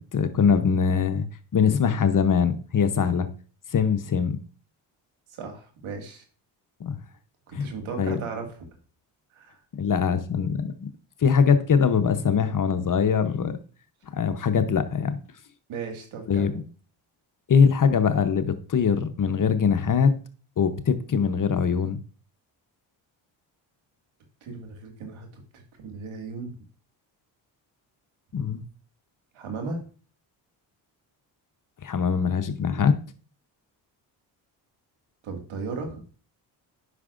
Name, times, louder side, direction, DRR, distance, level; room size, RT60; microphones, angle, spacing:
voice 1, 0.1-1.3 1.5-3.3 3.7-4.4 6.8-7.0 7.5-7.7 8.0-8.2 9.8-10.9 11.2-13.6 14.1-15.2 16.3-16.6 17.5-20.1 20.6-22.0 28.3-28.6 31.8-32.9, left 6 dB, 40° left, 10 dB, 0.9 m, -22 dB
voice 2, 5.3-6.2 7.5-8.5 9.3-9.6 15.7-16.6 24.4-25.3 25.5-26.6 29.3-29.8 35.2-36.0, right 4 dB, 75° right, 3 dB, 2.1 m, -36 dB
9.5 x 5.9 x 2.5 m, 0.40 s
supercardioid pair, 65°, 48 cm